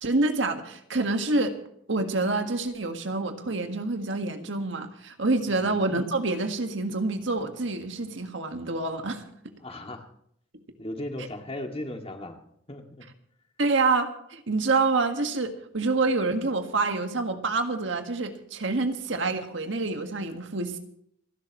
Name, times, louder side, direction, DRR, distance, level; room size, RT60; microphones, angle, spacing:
voice 1, 0.0-1.5 1.9-9.2 13.6-20.8, right 3 dB, 70° right, 6 dB, 1.7 m, -27 dB
voice 2, 9.6-10.1 10.8-12.4 12.7-13.1, left 1 dB, 30° left, 3 dB, 2.2 m, -37 dB
29.0 x 11.5 x 3.1 m, 0.71 s
head